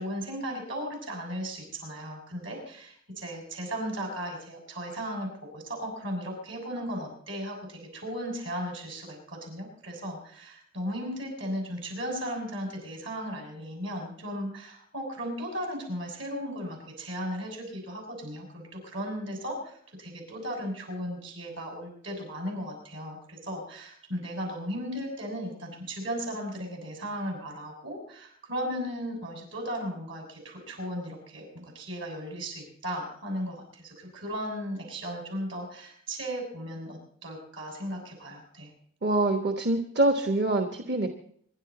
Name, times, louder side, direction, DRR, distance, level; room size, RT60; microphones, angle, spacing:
voice 1, 0.0-38.7, equal, 70° right, 1 dB, 6.7 m, -36 dB
voice 2, 39.0-41.1, right 2 dB, 55° right, 5 dB, 1.2 m, -25 dB
26.0 x 11.5 x 4.2 m, 0.64 s
head